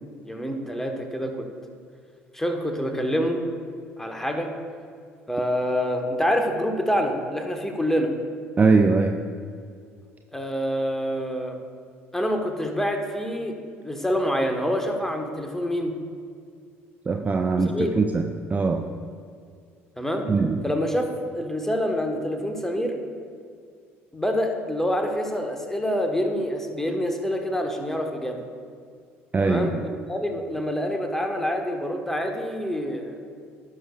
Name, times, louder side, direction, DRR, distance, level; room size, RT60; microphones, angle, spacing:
voice 1, 0.2-1.5 2.3-3.4 4.0-4.5 5.3-8.1 10.3-11.6 12.1-13.6 13.8-15.9 17.7-17.9 20.0-20.3 20.6-21.1 21.3-22.9 24.1-28.4 29.4-33.2, equal, 5° left, 4 dB, 1.2 m, -26 dB
voice 2, 8.6-9.2 17.1-18.9 20.3-20.6 29.3-29.8, right 4 dB, 25° right, 5 dB, 0.5 m, -21 dB
16.0 x 6.3 x 2.3 m, 2.2 s
figure-of-eight pair, 55°, 7 cm